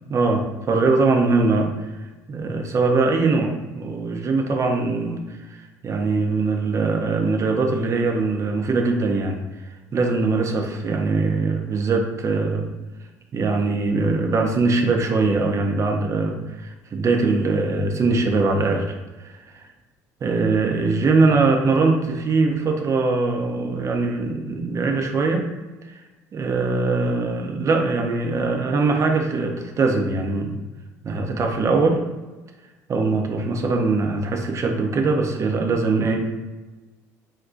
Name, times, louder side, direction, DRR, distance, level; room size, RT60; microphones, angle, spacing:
voice 1, 0.1-1.7 2.3-5.2 5.8-9.4 9.9-12.7 13.3-19.4 20.2-25.5 25.9-26.0 26.3-30.6 31.0-32.0 32.9-36.3, right 3 dB, 35° right, 3 dB, 0.6 m, -21 dB
2.5 x 2.2 x 3.8 m, 1.2 s
hypercardioid pair, 65°, 8 cm